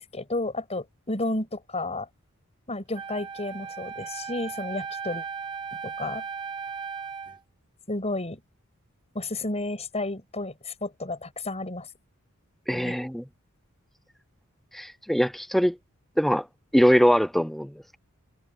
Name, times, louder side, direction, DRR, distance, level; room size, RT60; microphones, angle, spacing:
voice 1, 0.0-2.1 2.7-5.3 5.8-6.2 7.9-8.4 9.1-11.9 12.7-13.0, left 2 dB, 30° left, 6.2 m, -32 dB
Wind instrument woodwind instrument, 2.9-7.4, right 6 dB, 20° right, 1.4 m, -36 dB
voice 2, 12.7-13.2 14.7-15.8 16.2-16.5 16.7-18.0, equal, ahead, 0.5 m, -22 dB
head